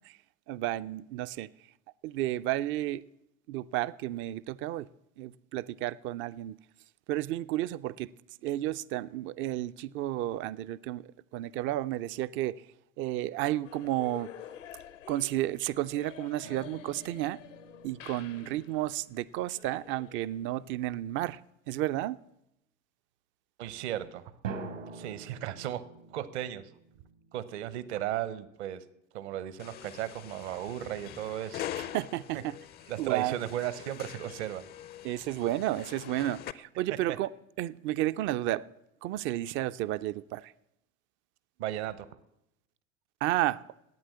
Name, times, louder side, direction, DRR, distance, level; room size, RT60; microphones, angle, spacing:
voice 1, 0.5-1.5 2.0-3.0 3.5-4.9 5.2-6.6 7.1-8.1 8.4-12.6 13.0-14.3 15.1-17.4 17.8-21.4 21.7-22.2 31.8-32.5 33.0-33.4 35.0-37.3 37.6-38.7 39.0-40.5 43.2-43.6, right 15 dB, 35° right, 0.4 m, -32 dB
sound 1, 13.6-21.0, left 9 dB, 75° left, 0.8 m, -50 dB
sound 2, 16.4-19.5 24.4-28.1, right 5 dB, 75° right, 1.6 m, -46 dB
voice 2, 23.6-24.2 24.9-25.8 26.1-26.6 27.3-28.8 29.1-31.7 32.9-34.7 37.1-37.2 41.6-42.1, right 12 dB, 60° right, 0.9 m, -35 dB
sound 3, 29.6-36.5, left 11 dB, 25° left, 0.5 m, -43 dB
10.5 x 9.0 x 8.5 m
figure-of-eight pair, 70°, 38 cm